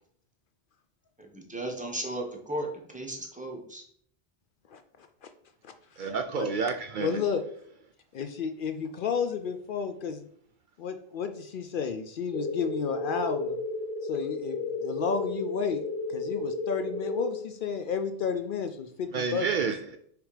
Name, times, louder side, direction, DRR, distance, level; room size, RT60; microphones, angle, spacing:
voice 1, 1.2-2.7 2.9-3.8, right 1 dB, 10° right, 0 dB, 1.1 m, -35 dB
voice 2, 4.7-5.3 5.6-5.7 6.0-6.1 6.4-6.5 7.0-7.4 8.1-10.2 10.8-13.6 14.0-15.8 16.1-19.5, left 6 dB, 65° left, 8 dB, 0.7 m, -32 dB
voice 3, 6.0-7.2 19.1-20.0, right 5 dB, 60° right, 5 dB, 0.6 m, -29 dB
sound 1, 12.3-17.3, left 3 dB, 10° left, 0.4 m, -33 dB
6.2 x 3.4 x 4.9 m, 0.63 s
omnidirectional pair, 1.0 m